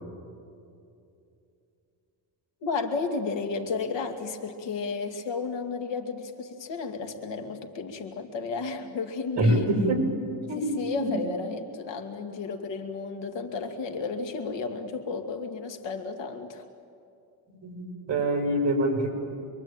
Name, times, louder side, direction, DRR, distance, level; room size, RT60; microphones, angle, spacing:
voice 1, 2.6-9.7 10.6-16.6, left 4 dB, 80° left, 4 dB, 2.6 m, -33 dB
voice 2, 9.4-10.1 10.5-11.2 17.6-19.1, right 1 dB, 35° right, 2 dB, 6.5 m, -25 dB
26.5 x 23.0 x 9.0 m, 2.6 s
cardioid pair, 150°, 43 cm